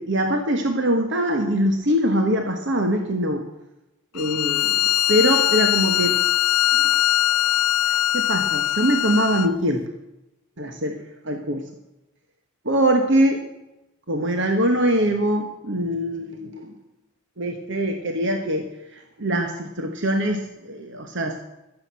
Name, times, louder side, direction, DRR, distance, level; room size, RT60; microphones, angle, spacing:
voice 1, 0.0-3.5 4.1-4.8 5.1-6.2 6.7-6.9 7.8-9.9 10.6-11.7 12.6-13.4 14.1-16.7 17.4-21.4, right 1 dB, 55° right, 5 dB, 1.3 m, -23 dB
Bowed string instrument, 4.2-9.5, left 14 dB, 85° left, 0.4 m, -21 dB
14.5 x 7.7 x 7.5 m, 0.94 s
head